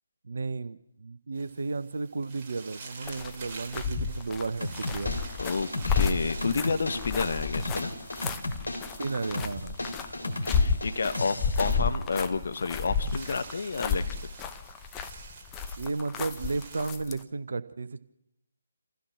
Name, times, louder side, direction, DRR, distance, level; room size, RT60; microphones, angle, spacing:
voice 1, 0.2-5.2 9.0-9.9 15.8-18.0, right 3 dB, 55° right, 12 dB, 0.9 m, -33 dB
sound 1, 1.3-16.9, right 4 dB, 25° right, 3.1 m, -49 dB
sound 2, 3.1-17.2, left 5 dB, 15° left, 1.0 m, -32 dB
sound 3, 4.6-11.8, left 1 dB, 70° left, 3.4 m, -35 dB
voice 2, 5.4-7.9 10.0-14.2, left 4 dB, 50° left, 9 dB, 1.3 m, -30 dB
27.5 x 15.5 x 6.2 m, 0.83 s
figure-of-eight pair, 145°, 0 cm